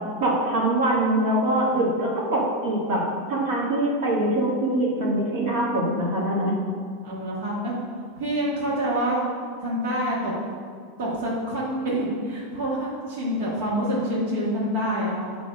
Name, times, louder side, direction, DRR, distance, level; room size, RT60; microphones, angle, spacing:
voice 1, 0.2-6.6, right 1 dB, 55° right, -4 dB, 1.5 m, -23 dB
voice 2, 7.0-7.8 8.2-9.2 9.6-10.3 11.0-15.4, equal, 80° right, -6 dB, 1.6 m, -27 dB
8.4 x 3.3 x 5.1 m, 2.1 s
supercardioid pair, 170°, 0 cm